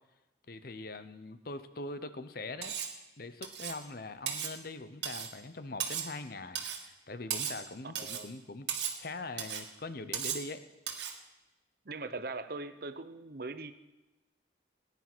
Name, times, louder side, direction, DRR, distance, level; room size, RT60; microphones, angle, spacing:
voice 1, 0.5-2.7 3.2-8.7 9.0-10.6, left 2 dB, 50° left, 11 dB, 0.8 m, -42 dB
Cutlery silverware, 2.6-3.0 3.4-3.8 4.3-4.6 5.0-5.3 5.8-6.2 6.6-6.8 7.3-7.7 8.0-8.3 8.7-9.0 9.4-9.7 10.1-10.5 10.9-11.2, right 8 dB, 65° right, 1.7 m, -36 dB
voice 2, 7.8-8.3 11.8-13.7, right 3 dB, 50° right, 11 dB, 0.8 m, -41 dB
18.5 x 10.0 x 6.2 m, 1.1 s
head